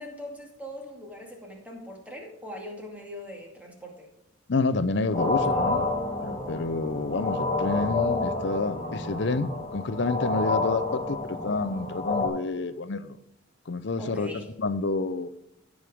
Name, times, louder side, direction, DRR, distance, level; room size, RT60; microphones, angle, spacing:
voice 1, 0.0-4.1 14.0-14.5, left 1 dB, 5° right, -1 dB, 2.2 m, -41 dB
voice 2, 4.5-5.9 6.2-13.2 13.7-14.3 14.6-15.3, left 3 dB, 60° left, 13 dB, 0.6 m, -29 dB
sound 1, 5.1-12.3, left 2 dB, 30° left, 2.8 m, -29 dB
15.5 x 6.4 x 3.6 m, 0.85 s
head